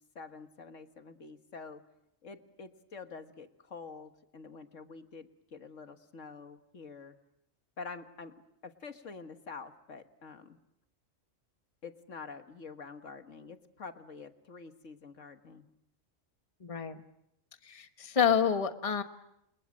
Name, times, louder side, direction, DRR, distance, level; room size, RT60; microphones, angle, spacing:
voice 1, 0.2-1.8 2.2-7.2 7.8-8.3 8.6-10.6 11.8-15.7, left 4 dB, 70° left, 7 dB, 1.9 m, -47 dB
voice 2, 16.6-17.0 17.6-19.0, left 7 dB, 25° left, 8 dB, 1.3 m, -28 dB
29.5 x 28.5 x 6.4 m, 0.79 s
omnidirectional pair, 1.3 m